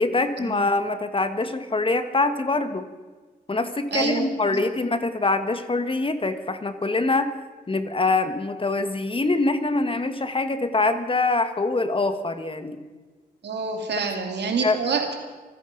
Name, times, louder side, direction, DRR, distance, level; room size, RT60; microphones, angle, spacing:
voice 1, 0.0-2.9 3.5-7.3 7.7-12.8 14.6-14.8, left 3 dB, 30° left, 9 dB, 1.6 m, -24 dB
voice 2, 3.9-4.6 13.4-15.1, right 5 dB, 75° right, 4 dB, 2.5 m, -27 dB
26.5 x 10.5 x 5.2 m, 1.3 s
cardioid pair, 65°, 18 cm